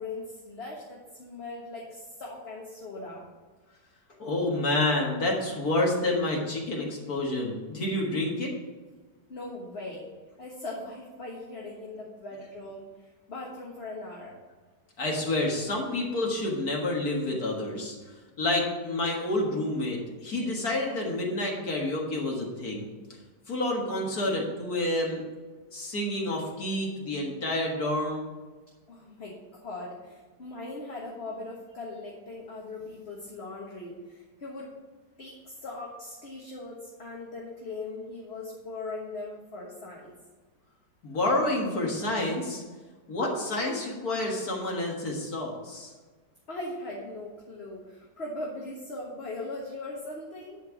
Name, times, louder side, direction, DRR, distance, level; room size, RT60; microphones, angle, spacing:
voice 1, 0.0-3.3 9.3-10.1 10.4-14.4 28.9-34.7 35.2-40.1 46.5-50.6, left 2 dB, 40° left, -2 dB, 1.4 m, -39 dB
voice 2, 4.2-8.5 15.0-18.0 18.4-22.9 23.5-25.2 25.7-28.3 41.0-42.6 43.1-45.9, left 1 dB, 55° left, -1 dB, 2.1 m, -29 dB
11.0 x 4.5 x 7.0 m, 1.3 s
omnidirectional pair, 1.9 m